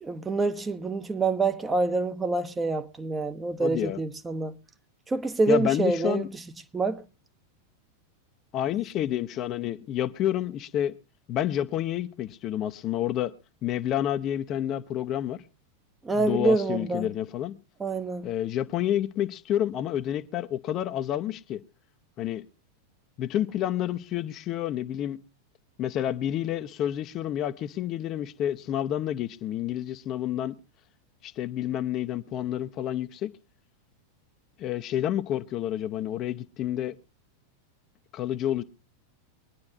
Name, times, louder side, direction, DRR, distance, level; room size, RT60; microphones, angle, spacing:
voice 1, 0.0-4.6 5.1-6.3 6.7-7.0 16.0-17.1 17.8-18.3, right 3 dB, 15° right, 0.8 m, -26 dB
voice 2, 3.6-4.0 5.5-6.3 8.5-10.9 11.3-13.3 13.6-15.4 16.1-17.5 18.2-21.6 22.2-22.4 23.2-25.2 25.8-30.6 31.2-33.3 34.6-37.0 38.1-38.6, left 11 dB, 35° left, 0.7 m, -29 dB
23.5 x 10.5 x 2.6 m
figure-of-eight pair, 90°, 0 cm